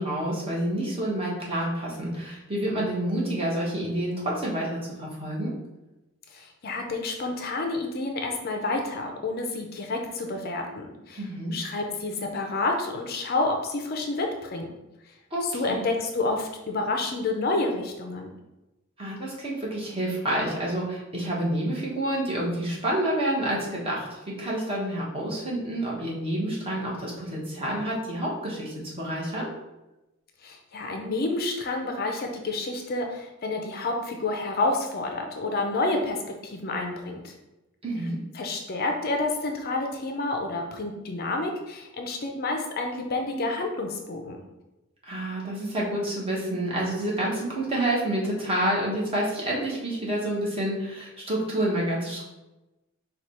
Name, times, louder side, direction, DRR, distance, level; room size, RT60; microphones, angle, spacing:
voice 1, 0.0-5.5 11.2-11.6 15.3-15.8 19.0-29.5 37.8-38.2 45.0-52.2, right 1 dB, 25° right, -5 dB, 1.1 m, -28 dB
voice 2, 6.3-11.2 11.5-14.7 15.4-18.3 30.4-37.3 38.3-44.4, left 2 dB, 45° left, 3 dB, 0.5 m, -29 dB
4.7 x 2.3 x 4.3 m, 0.99 s
head